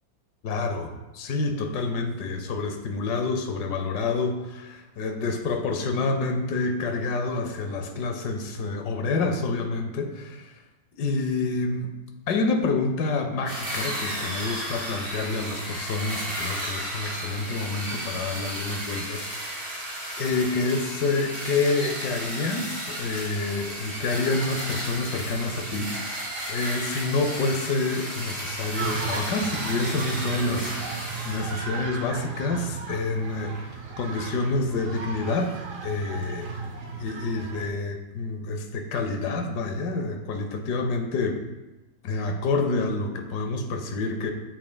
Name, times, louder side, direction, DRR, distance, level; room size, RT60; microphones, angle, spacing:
voice 1, 0.4-10.5 11.0-11.9 12.3-19.3 20.2-26.2 26.5-33.7 34.0-35.5 35.8-36.5 37.0-41.4 42.0-44.3, left 3 dB, 65° left, 5 dB, 1.2 m, -28 dB
sound 1, 13.5-31.7, right 1 dB, 40° right, 2.3 m, -34 dB
sound 2, 28.8-37.7, right 4 dB, 60° right, 0.8 m, -35 dB
7.8 x 5.8 x 2.2 m, 1.1 s
omnidirectional pair, 2.1 m